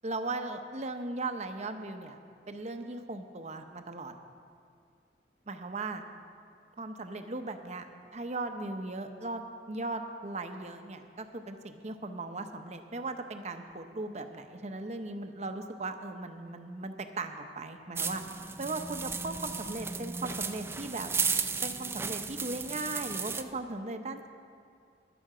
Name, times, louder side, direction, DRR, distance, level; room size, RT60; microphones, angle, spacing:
voice 1, 0.0-2.2 2.5-4.2 5.5-6.0 6.8-18.2 18.6-21.1 21.6-24.3, right 2 dB, 40° right, 7 dB, 0.8 m, -38 dB
sound 1, 18.0-23.4, right 5 dB, 15° right, 0.4 m, -34 dB
13.0 x 11.0 x 5.0 m, 2.3 s
head